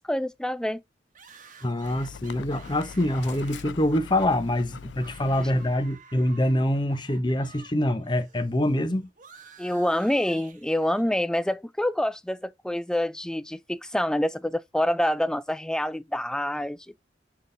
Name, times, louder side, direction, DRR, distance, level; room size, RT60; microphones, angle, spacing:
voice 1, 0.1-0.8 9.6-16.9, left 1 dB, 5° left, 0.4 m, -27 dB
sound 1, 1.1-7.7 8.0-11.2, right 5 dB, 45° right, 1.4 m, -52 dB
voice 2, 1.6-9.1, left 1 dB, 25° left, 1.0 m, -25 dB
Dog, 1.8-6.0, left 6 dB, 70° left, 0.4 m, -43 dB
7.1 x 4.2 x 3.4 m
head